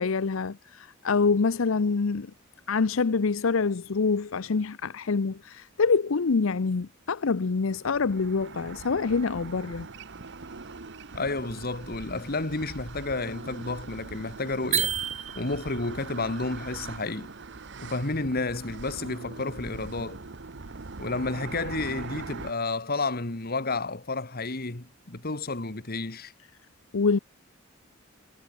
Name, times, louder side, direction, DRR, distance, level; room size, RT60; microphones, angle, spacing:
voice 1, 0.0-2.3 2.7-9.9 26.9-27.2, left 4 dB, 75° left, 0.6 m, -26 dB
sound 1, 7.6-22.5, right 3 dB, 60° right, 1.1 m, -42 dB
voice 2, 11.1-15.0 15.4-17.3 17.8-20.2 21.0-26.3, left 3 dB, 50° left, 2.0 m, -31 dB
sound 2, 14.7-15.9, right 10 dB, 35° right, 0.9 m, -29 dB
head